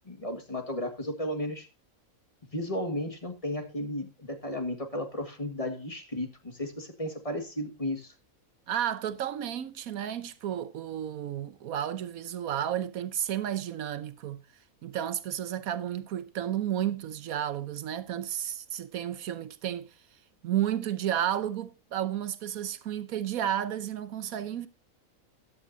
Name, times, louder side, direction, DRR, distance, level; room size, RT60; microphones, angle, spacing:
voice 1, 0.0-1.7 2.5-8.1, left 1 dB, 25° left, 1.7 m, -34 dB
voice 2, 8.7-14.4 14.8-19.9 20.4-24.7, right 10 dB, 85° right, 1.3 m, -32 dB
14.5 x 10.5 x 2.7 m
omnidirectional pair, 1.4 m